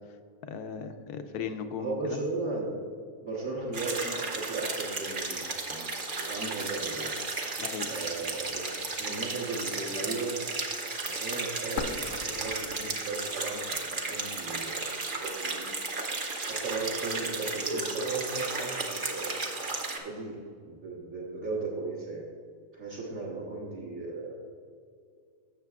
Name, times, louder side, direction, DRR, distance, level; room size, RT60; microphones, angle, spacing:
voice 1, 0.5-2.2 7.6-7.9, left 6 dB, 90° left, 8 dB, 1.2 m, -36 dB
voice 2, 1.8-2.9 3.2-5.9 6.3-7.1 7.9-10.4 11.1-15.7 16.5-19.4 20.0-22.2 22.7-24.4, right 3 dB, 60° right, -7 dB, 1.6 m, -36 dB
sound 1, 3.7-20.0, right 3 dB, 40° right, 0.9 m, -34 dB
sound 2, 11.8-13.7 14.0-14.1 14.8-15.8, left 6 dB, 70° left, 0.9 m, -40 dB
14.5 x 6.5 x 2.4 m, 2.2 s
omnidirectional pair, 1.6 m